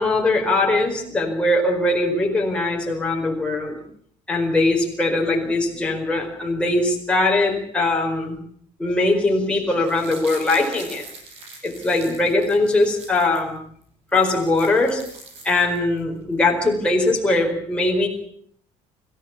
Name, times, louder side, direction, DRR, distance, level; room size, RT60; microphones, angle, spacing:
voice 1, 0.0-3.8 4.3-8.4 8.8-11.0 11.6-13.6 14.1-15.0 15.4-18.1, left 2 dB, 10° left, 0 dB, 4.6 m, -21 dB
sound 1, 9.7-13.4 13.8-13.9 14.1-16.0 16.3-16.4, right 3 dB, 55° right, 7.5 m, -42 dB
25.5 x 15.0 x 8.4 m, 0.65 s
cardioid pair, 180°, 13 cm